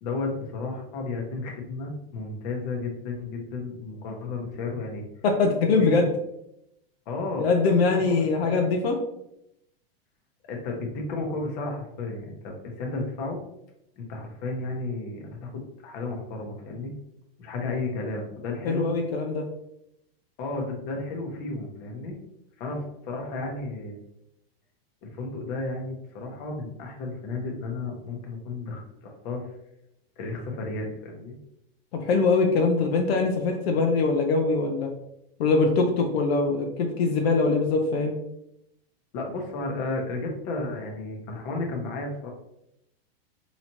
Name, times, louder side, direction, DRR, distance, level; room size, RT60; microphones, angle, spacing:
voice 1, 0.0-5.0 5.8-6.1 7.1-8.5 10.5-13.4 14.0-16.9 17.4-18.9 20.4-22.2 22.6-24.0 25.0-29.5 30.2-31.4 39.1-42.3, left 3 dB, 50° left, 1 dB, 1.0 m, -33 dB
voice 2, 5.2-6.1 7.4-9.0 18.6-19.4 31.9-34.9 35.4-38.2, left 4 dB, 85° left, 2 dB, 0.7 m, -22 dB
4.1 x 2.9 x 2.9 m, 0.80 s
supercardioid pair, 145°, 30 cm